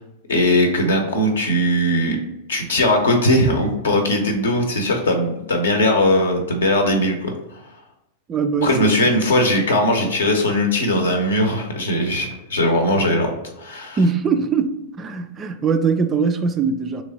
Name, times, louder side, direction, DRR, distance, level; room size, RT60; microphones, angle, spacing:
voice 1, 0.3-2.2 2.5-7.6 8.6-13.3 13.6-14.0, left 1 dB, 65° left, 0.7 m, -19 dB
voice 2, 8.3-8.9 14.0-17.0, right 5 dB, 25° right, 0.3 m, -21 dB
3.4 x 3.0 x 4.0 m
figure-of-eight pair, 90°, 0 cm